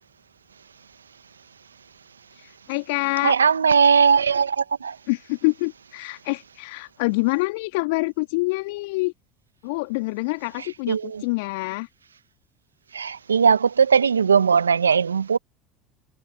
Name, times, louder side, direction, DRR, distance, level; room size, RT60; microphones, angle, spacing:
voice 1, 2.3-3.3 5.1-9.1 9.6-11.9, left 25 dB, 65° left, 2.1 m, -26 dB
voice 2, 3.2-5.0 10.9-11.2 12.9-15.4, right 6 dB, 85° right, 1.7 m, -19 dB
figure-of-eight pair, 70°, 0 cm